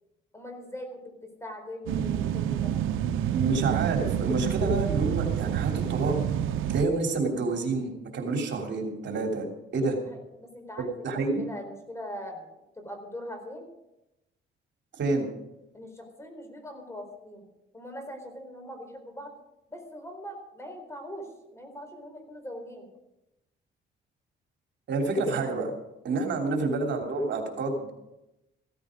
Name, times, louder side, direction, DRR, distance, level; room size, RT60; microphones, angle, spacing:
voice 1, 0.3-2.7 10.0-13.7 15.7-17.4 17.7-19.3 19.7-21.3 21.5-22.9 26.1-26.3, equal, 15° left, 5 dB, 4.3 m, -41 dB
sound 1, 1.9-6.8, right 10 dB, 85° right, 0.8 m, -28 dB
voice 2, 3.3-6.2 6.7-9.5 9.7-10.0 10.8-11.4 14.9-15.3 24.9-25.7 26.0-27.9, right 3 dB, 65° right, 2 dB, 3.2 m, -28 dB
15.5 x 14.5 x 5.1 m, 0.92 s
cardioid pair, 90°, 20 cm